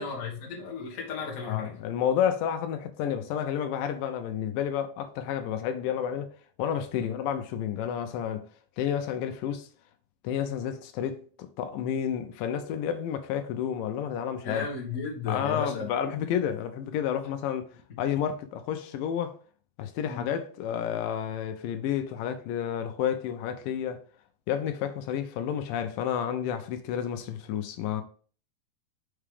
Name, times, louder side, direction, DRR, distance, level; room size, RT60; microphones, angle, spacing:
voice 1, 0.0-1.8 7.0-7.1 14.4-15.9 17.9-18.0 20.0-20.3, left 5 dB, 45° left, 1.0 m, -34 dB
voice 2, 1.4-6.3 6.6-8.5 8.8-9.7 10.2-14.6 15.3-19.4 19.8-24.0 24.5-28.0, left 9 dB, 80° left, 2.2 m, -30 dB
5.6 x 4.9 x 3.4 m
omnidirectional pair, 4.0 m